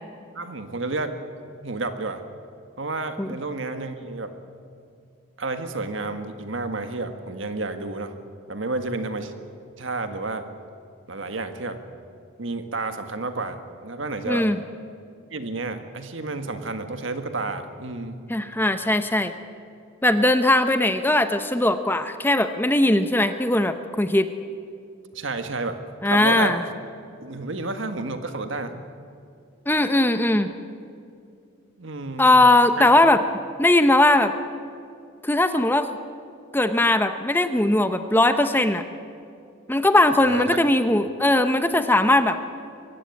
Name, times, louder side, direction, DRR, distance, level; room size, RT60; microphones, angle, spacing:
voice 1, 0.3-1.2 1.6-2.2 2.8-4.3 5.4-8.2 8.5-9.3 9.8-10.5 11.1-11.8 12.4-13.6 13.8-14.5 15.3-18.2 25.1-25.8 26.1-26.6 27.2-28.8 31.8-32.3 32.8-32.9 40.2-40.6, right 3 dB, 65° right, 8 dB, 1.7 m, -30 dB
voice 2, 14.3-14.6 18.3-19.3 20.0-24.3 26.0-26.6 29.7-30.5 32.2-33.2 33.6-34.3 35.2-35.9 36.5-38.8 39.7-42.4, left 1 dB, 10° left, 9 dB, 0.7 m, -19 dB
23.0 x 16.0 x 9.6 m, 2.5 s
head